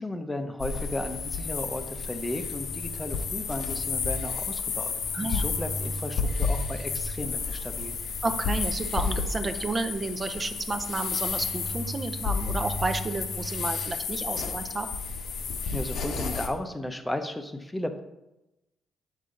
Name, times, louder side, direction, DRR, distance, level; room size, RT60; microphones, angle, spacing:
voice 1, 0.0-4.9 5.3-8.0 15.7-18.0, left 1 dB, 10° left, 7 dB, 0.7 m, -34 dB
sound 1, 0.6-16.5, left 4 dB, 70° left, 0.9 m, -31 dB
voice 2, 5.1-5.5 8.2-14.9, right 3 dB, 30° right, 8 dB, 0.6 m, -31 dB
7.2 x 5.4 x 3.8 m, 0.95 s
cardioid pair, 90°, 0 cm